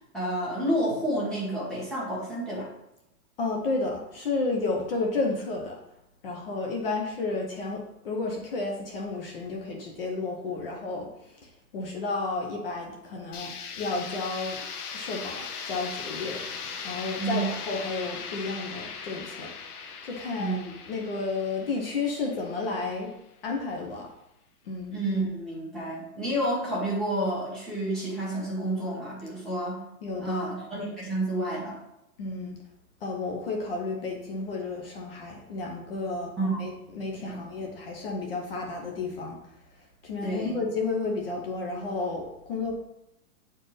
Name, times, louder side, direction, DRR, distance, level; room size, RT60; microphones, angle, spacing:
voice 1, 0.1-2.7 17.2-17.4 20.4-20.6 24.9-29.8 30.2-31.8 36.4-36.6 37.3-37.5 40.2-40.6, right 1 dB, ahead, -9 dB, 1.3 m, -30 dB
voice 2, 3.4-5.8 6.2-14.6 14.9-16.4 16.8-19.5 20.0-20.6 20.9-23.1 23.4-24.1 24.7-25.0 30.0-30.5 32.2-32.6 33.0-36.3 36.6-39.4 40.0-42.7, left 3 dB, 40° left, 1 dB, 1.0 m, -32 dB
sound 1, 13.3-23.1, left 6 dB, 90° left, 1.2 m, -39 dB
9.1 x 4.5 x 3.3 m, 0.86 s
hypercardioid pair, 175°, 44 cm